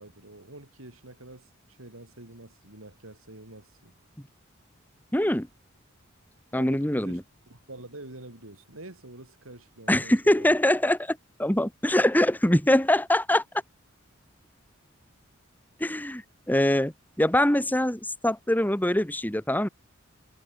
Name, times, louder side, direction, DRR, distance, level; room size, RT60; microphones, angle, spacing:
voice 1, 0.0-3.9 6.5-7.2 7.5-10.6, right 2 dB, 85° right, 4.8 m, -46 dB
voice 2, 5.1-5.5 6.5-7.2 9.9-13.4 15.8-16.2 16.5-16.9 17.2-19.7, left 1 dB, 10° left, 1.6 m, -23 dB
head